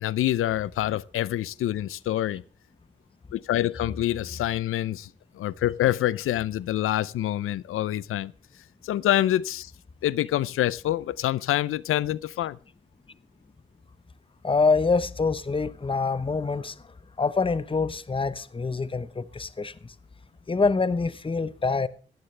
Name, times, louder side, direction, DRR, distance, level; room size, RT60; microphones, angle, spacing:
voice 1, 0.0-2.4 3.3-5.1 5.3-8.3 8.8-9.7 10.0-12.6, left 13 dB, 85° left, 0.5 m, -26 dB
voice 2, 14.4-16.8 17.2-19.9 20.5-21.9, left 4 dB, 25° left, 1.0 m, -25 dB
16.5 x 15.0 x 3.3 m
cardioid pair, 60°, 21 cm